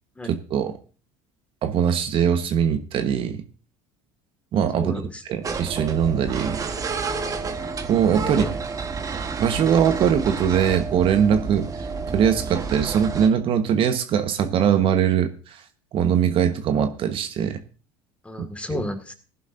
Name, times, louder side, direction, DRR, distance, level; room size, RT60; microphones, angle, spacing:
voice 1, 0.2-0.7 1.6-3.4 4.5-4.9 5.3-6.7 7.9-8.4 9.4-11.7 12.1-15.6 15.9-17.6 18.7-18.8, right 8 dB, 50° right, 8 dB, 1.2 m, -21 dB
voice 2, 4.8-5.2 8.2-8.5 18.2-19.1, left 2 dB, 10° left, 7 dB, 1.9 m, -32 dB
sound 1, 5.4-13.3, right 4 dB, 30° right, 1.3 m, -30 dB
16.5 x 11.0 x 2.6 m, 0.36 s
supercardioid pair, 85°, 11 cm